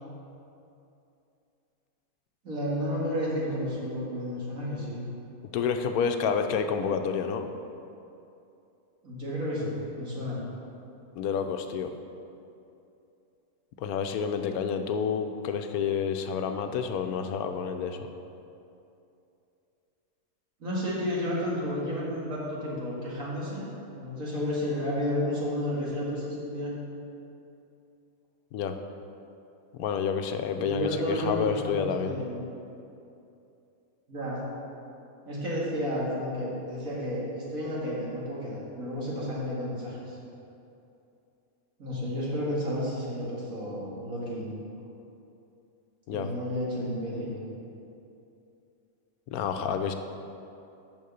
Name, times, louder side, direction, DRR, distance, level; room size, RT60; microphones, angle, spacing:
voice 1, 2.4-5.1 9.0-10.4 20.6-23.7 24.0-26.7 30.6-32.4 34.1-34.4 35.3-40.2 41.8-44.5 46.1-47.4, equal, 65° right, -6 dB, 2.4 m, -32 dB
voice 2, 5.5-7.5 11.2-11.9 13.8-18.1 28.5-28.7 29.8-32.2 46.1-46.3 49.3-49.9, left 6 dB, 80° left, 7 dB, 1.1 m, -29 dB
6.5 x 6.4 x 6.8 m, 2.7 s
omnidirectional pair, 1.6 m